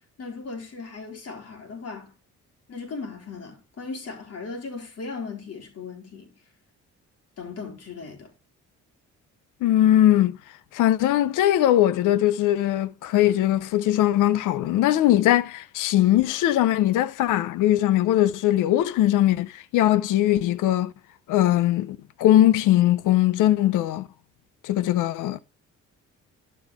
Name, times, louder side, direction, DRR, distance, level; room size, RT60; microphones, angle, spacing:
voice 1, 0.2-2.1 2.7-6.3 7.4-8.3, left 4 dB, 55° left, 4.2 m, -37 dB
voice 2, 9.6-10.4 10.7-20.9 21.3-24.1 24.6-25.4, left 13 dB, 90° left, 0.7 m, -20 dB
11.5 x 5.4 x 3.6 m
cardioid pair, 90°, 30 cm